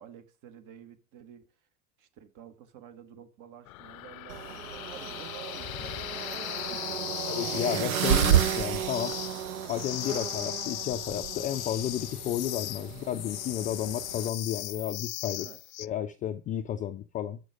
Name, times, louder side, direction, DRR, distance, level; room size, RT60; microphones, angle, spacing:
voice 1, 0.0-1.5 2.0-7.3 15.4-15.6, right 9 dB, 45° right, 1.6 m, -50 dB
sound 1, 3.7-15.9, left 15 dB, 70° left, 0.5 m, -38 dB
sound 2, 4.3-14.3, right 11 dB, 70° right, 0.9 m, -32 dB
voice 2, 7.3-9.1 9.7-15.5 15.8-17.4, left 11 dB, 20° left, 0.3 m, -32 dB
8.3 x 6.2 x 5.0 m
hypercardioid pair, 85°, 43 cm